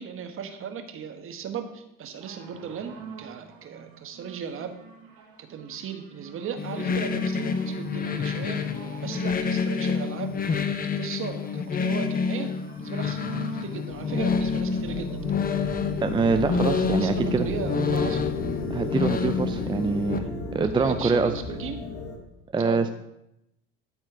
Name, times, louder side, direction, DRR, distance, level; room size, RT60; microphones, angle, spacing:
voice 1, 0.0-4.7 5.4-8.6 9.0-12.5 12.8-13.2 13.6-15.1 16.1-18.3 20.6-21.8 22.6-22.9, right 7 dB, 45° right, 6 dB, 1.3 m, -36 dB
sound 1, 2.2-15.8 16.5-16.6, right 6 dB, 75° right, 1.9 m, -45 dB
sound 2, 6.6-20.2, left 6 dB, 30° left, 0.9 m, -28 dB
sound 3, 13.9-22.2, left 2 dB, 75° left, 1.6 m, -33 dB
voice 2, 16.0-17.5 18.7-20.2 20.5-21.3 22.5-22.9, right 4 dB, 15° right, 9 dB, 0.5 m, -24 dB
13.0 x 4.4 x 4.6 m, 0.83 s
hypercardioid pair, 65°, 29 cm